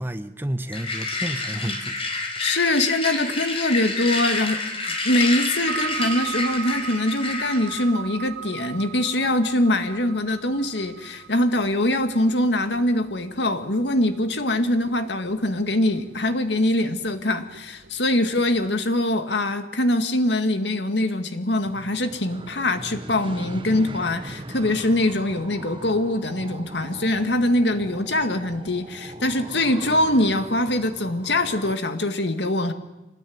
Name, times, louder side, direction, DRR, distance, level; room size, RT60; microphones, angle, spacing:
voice 1, 0.0-2.1, right 1 dB, 10° right, 9 dB, 1.1 m, -31 dB
sound 1, 0.7-7.9, left 3 dB, 35° left, 4.6 m, -28 dB
voice 2, 2.4-4.6 5.0-32.7, left 1 dB, 75° left, 8 dB, 2.0 m, -23 dB
sound 2, 5.7-18.9, right 9 dB, 85° right, 1.4 m, -39 dB
sound 3, 21.6-31.8, right 1 dB, 30° right, 1.2 m, -39 dB
26.0 x 19.5 x 9.5 m, 1.0 s
head